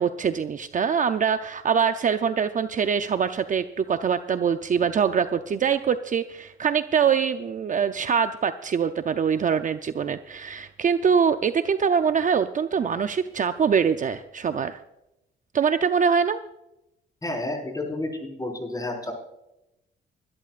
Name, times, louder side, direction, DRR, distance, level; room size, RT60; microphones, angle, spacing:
voice 1, 0.0-14.8 15.5-16.4, right 7 dB, 40° right, 9 dB, 0.6 m, -23 dB
voice 2, 17.2-19.1, left 2 dB, 20° left, 1 dB, 4.9 m, -30 dB
24.5 x 12.5 x 2.5 m, 0.88 s
cardioid pair, 90°, 20 cm